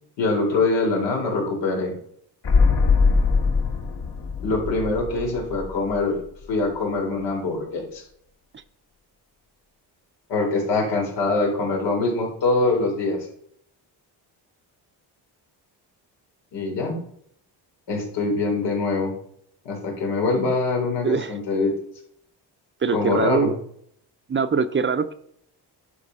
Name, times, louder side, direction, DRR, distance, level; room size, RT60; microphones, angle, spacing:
voice 1, 0.2-1.9 4.4-6.2 6.5-8.0 10.3-13.3 16.5-17.0 17.9-19.1 19.6-21.7 22.9-23.5, left 3 dB, 90° left, 0 dB, 4.0 m, -24 dB
sound 1, 2.4-6.2 6.5-6.6, left 4 dB, 65° left, 2.0 m, -22 dB
voice 2, 21.0-21.3 22.8-23.6 24.3-25.1, right 5 dB, 30° right, 11 dB, 0.6 m, -23 dB
11.5 x 5.2 x 5.5 m, 0.66 s
cardioid pair, 110°, 42 cm